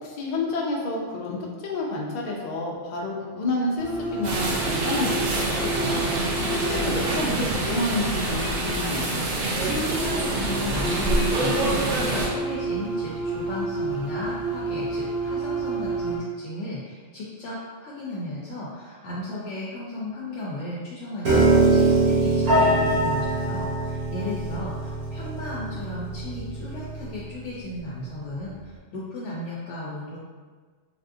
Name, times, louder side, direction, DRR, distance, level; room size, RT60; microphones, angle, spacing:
voice 1, 0.0-6.0 6.5-9.1, left 2 dB, 55° left, -2 dB, 0.5 m, -29 dB
sound 1, 3.8-7.6 9.5-16.2, right 3 dB, 70° right, 1.4 m, -30 dB
sound 2, 4.2-12.3, right 2 dB, 90° right, 1.0 m, -26 dB
voice 2, 9.8-30.2, left 1 dB, 70° left, -6 dB, 0.8 m, -35 dB
Piano, 21.2-27.5, right 2 dB, 50° right, 1.2 m, -23 dB
3.5 x 2.5 x 2.5 m, 1.5 s
omnidirectional pair, 1.3 m